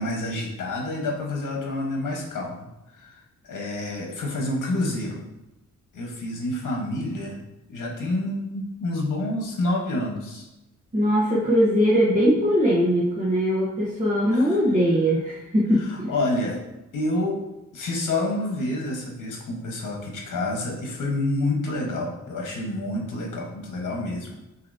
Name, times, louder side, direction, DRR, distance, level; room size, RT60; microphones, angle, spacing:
voice 1, 0.0-2.6 2.9-3.2 3.5-5.2 5.9-7.4 7.7-10.5 14.3-14.6 15.8-16.6 16.9-17.4 17.7-24.3, left 1 dB, 70° left, -1 dB, 1.2 m, -28 dB
voice 2, 10.9-16.1, equal, 25° right, -8 dB, 1.0 m, -21 dB
6.6 x 2.9 x 2.7 m, 0.95 s
wide cardioid pair, 160°, 32 cm